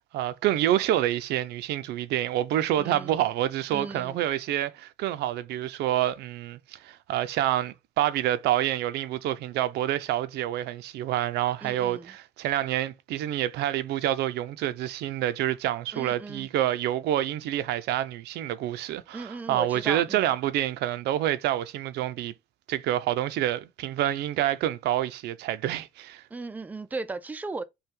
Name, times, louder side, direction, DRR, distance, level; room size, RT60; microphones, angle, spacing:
voice 1, 0.1-22.3 22.7-26.2, right 12 dB, 80° right, 0.6 m, -27 dB
voice 2, 2.8-3.2 3.7-4.2 11.6-12.1 15.9-16.5 19.1-20.3 26.3-27.6, right 3 dB, 10° right, 0.4 m, -36 dB
5.6 x 2.4 x 3.6 m
cardioid pair, 110°, 17 cm